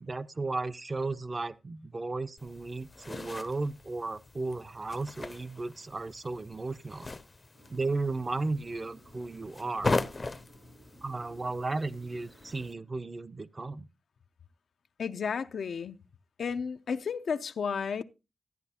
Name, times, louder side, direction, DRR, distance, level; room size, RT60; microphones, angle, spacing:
voice 1, 0.0-7.1 7.7-9.9 11.0-13.9, right 3 dB, 35° right, 0.4 m, -35 dB
sound 1, 2.4-12.7, left 3 dB, 35° left, 0.5 m, -39 dB
Engine, 7.5-12.7, right 1 dB, 75° right, 4.1 m, -58 dB
voice 2, 15.0-16.0 16.4-18.0, left 6 dB, 90° left, 0.4 m, -32 dB
13.5 x 9.8 x 2.7 m
wide cardioid pair, 110°, 0 cm